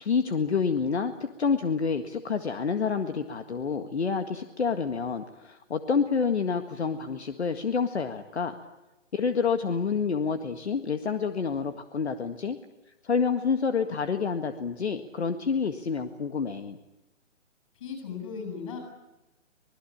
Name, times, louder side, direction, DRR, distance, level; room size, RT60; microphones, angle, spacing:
voice 1, 0.0-8.6 9.1-12.6 13.0-16.8, left 5 dB, 60° left, 7 dB, 1.9 m, -28 dB
voice 2, 17.8-18.8, left 6 dB, 25° left, 3 dB, 7.6 m, -36 dB
26.0 x 20.5 x 8.7 m, 1.0 s
hypercardioid pair, 175°, 38 cm